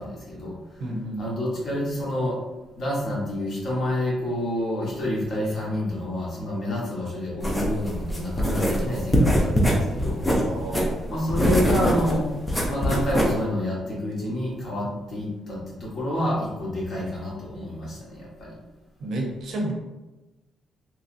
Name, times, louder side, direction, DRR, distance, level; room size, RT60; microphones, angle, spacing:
voice 1, 0.0-0.8 1.2-2.4 2.7-10.2 11.1-12.3 12.7-18.5, left 1 dB, 40° left, -5 dB, 1.0 m, -28 dB
voice 2, 0.8-1.4 10.4-11.0 14.8-15.0 19.0-19.7, right 1 dB, 60° right, 0 dB, 0.5 m, -31 dB
sound 1, 7.4-13.4, equal, 10° left, 0.5 m, -23 dB
3.0 x 2.7 x 2.5 m, 1.1 s
cardioid pair, 175°, 0 cm